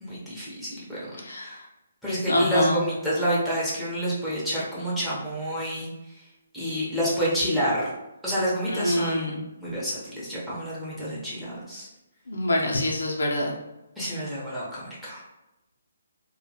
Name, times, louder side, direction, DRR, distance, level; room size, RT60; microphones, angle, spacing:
voice 1, 0.0-1.1 1.4-1.5 2.0-5.9 6.5-7.9 8.2-11.9 14.0-15.2, equal, ahead, -9 dB, 0.7 m, -28 dB
voice 2, 1.2-1.6 2.3-2.8 8.7-9.4 12.3-13.6, left 1 dB, 85° left, 0 dB, 0.6 m, -25 dB
2.3 x 2.2 x 2.7 m, 0.95 s
hypercardioid pair, 150°, 0 cm